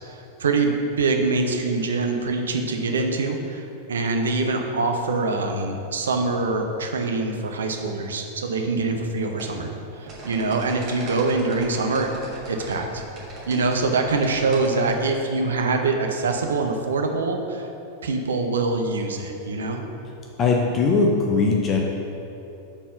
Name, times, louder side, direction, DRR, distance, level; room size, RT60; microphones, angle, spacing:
voice 1, 0.0-3.6 3.9-9.7 10.0-12.1 12.5-13.0 13.5-17.7 18.0-19.8, right 3 dB, 65° right, 3 dB, 0.6 m, -24 dB
sound 1, 9.4-15.0, right 2 dB, 35° right, 1.5 m, -40 dB
voice 2, 20.4-21.8, left 4 dB, 30° left, 0 dB, 0.6 m, -20 dB
5.6 x 4.3 x 5.5 m, 2.9 s
figure-of-eight pair, 90°, 0 cm